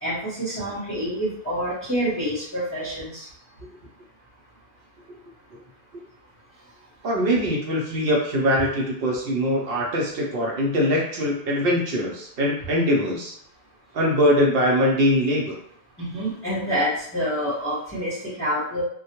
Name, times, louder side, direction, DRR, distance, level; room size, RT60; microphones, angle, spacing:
voice 1, 0.0-3.3 16.0-18.8, equal, 15° left, -9 dB, 0.8 m, -27 dB
voice 2, 7.0-13.3 13.9-15.6, equal, 65° right, -2 dB, 0.8 m, -22 dB
2.2 x 2.1 x 2.8 m, 0.64 s
omnidirectional pair, 1.1 m